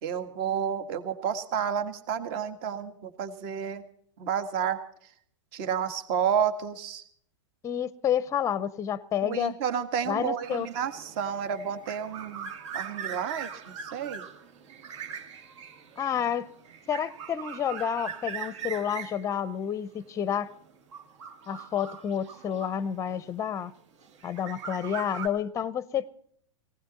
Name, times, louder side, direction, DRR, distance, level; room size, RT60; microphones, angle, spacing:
voice 1, 0.0-3.8 4.2-4.8 5.5-7.0 9.2-14.3, right 8 dB, 45° right, 1.8 m, -31 dB
voice 2, 7.6-9.5 10.1-10.7 16.0-16.5 16.9-20.5 21.5-23.7 24.2-26.1, left 9 dB, 20° left, 0.6 m, -29 dB
sound 1, 10.4-23.3 24.0-25.3, right 7 dB, 65° right, 2.4 m, -41 dB
18.5 x 16.5 x 4.1 m
hypercardioid pair, 115°, 16 cm